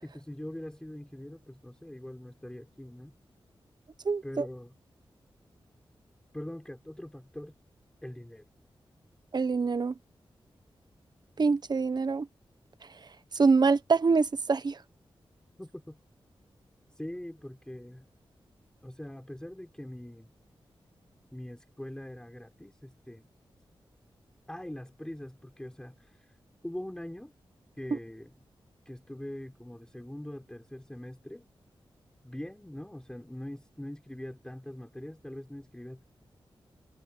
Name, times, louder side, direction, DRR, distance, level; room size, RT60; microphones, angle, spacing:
voice 1, 0.0-3.2 4.2-4.8 6.3-7.5 8.0-8.4 15.6-16.0 16.9-18.1 18.8-20.3 21.3-23.3 24.5-26.4 26.6-27.3 27.8-28.3 28.9-31.5 32.2-36.0, left 1 dB, 10° left, 4.0 m, -42 dB
voice 2, 4.0-4.4 9.3-9.9 11.4-12.3 13.3-14.8, right 4 dB, 50° right, 1.2 m, -25 dB
wide cardioid pair, 90°, 9 cm